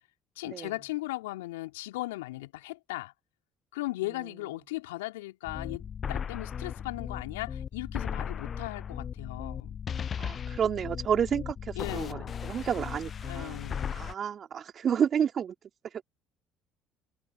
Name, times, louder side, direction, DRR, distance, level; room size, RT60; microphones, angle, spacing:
voice 1, 0.4-3.1 3.7-9.8 11.8-12.3 13.2-14.0, left 19 dB, 75° left, 2.6 m, -37 dB
sound 1, 5.4-14.1, left 7 dB, 40° left, 0.5 m, -36 dB
voice 2, 10.2-15.5 15.8-16.0, right 8 dB, 45° right, 2.7 m, -31 dB
hypercardioid pair, 55°, 0 cm